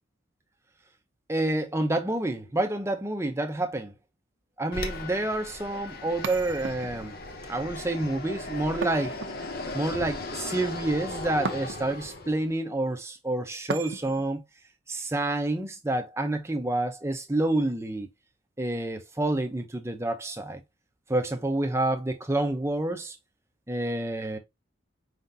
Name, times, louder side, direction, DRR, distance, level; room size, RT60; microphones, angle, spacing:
voice 1, 1.3-3.9 4.6-7.1 7.5-9.2 9.7-14.4 14.9-18.1 18.6-20.6 21.1-23.2 23.7-24.4, right 2 dB, 15° right, 0.6 m, -28 dB
Fixed-wing aircraft airplane, 4.7-12.5, left 2 dB, 50° left, 0.8 m, -37 dB
sound 1, 6.2-7.2 8.8-9.8 11.4-12.1 13.7-14.3, right 4 dB, 75° right, 0.6 m, -36 dB
5.0 x 3.8 x 2.7 m
head